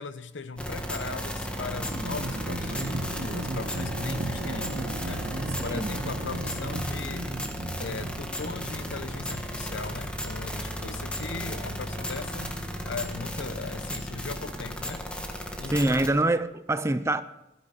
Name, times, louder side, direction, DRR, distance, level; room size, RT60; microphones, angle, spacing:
voice 1, 0.0-5.3 5.6-7.3 7.8-12.6 12.8-15.1 15.6-16.0, left 4 dB, 75° left, 0.8 m, -38 dB
sound 1, 0.6-16.1, equal, 5° left, 1.5 m, -34 dB
sound 2, 1.8-13.3, right 2 dB, 55° right, 0.7 m, -38 dB
voice 2, 5.6-5.9 15.7-17.2, right 2 dB, 15° right, 0.6 m, -25 dB
20.5 x 12.5 x 4.1 m
head